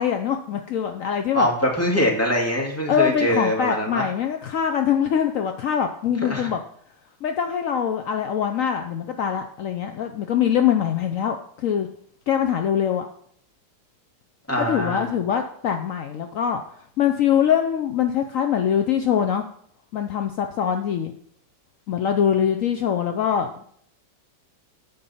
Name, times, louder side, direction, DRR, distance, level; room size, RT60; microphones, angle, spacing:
voice 1, 0.0-1.5 2.9-6.6 7.2-11.9 12.3-13.1 14.6-16.6 17.0-19.5 19.9-21.1 21.9-23.6, left 8 dB, 70° left, 6 dB, 0.7 m, -23 dB
voice 2, 1.3-4.1 6.3-6.5 14.5-15.1, equal, 5° left, -1 dB, 2.1 m, -23 dB
9.2 x 5.4 x 7.1 m, 0.64 s
omnidirectional pair, 2.2 m